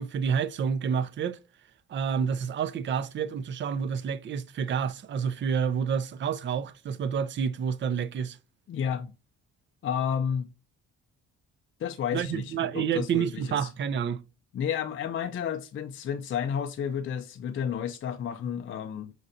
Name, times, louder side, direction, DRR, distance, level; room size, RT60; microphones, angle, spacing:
voice 1, 0.0-1.4 1.9-8.4 12.1-14.2, right 7 dB, 40° right, 0.4 m, -29 dB
voice 2, 8.7-9.1 9.8-10.5 11.8-13.7 14.5-19.1, left 8 dB, 45° left, 0.4 m, -31 dB
5.2 x 2.5 x 2.6 m
cardioid pair, 90°, 30 cm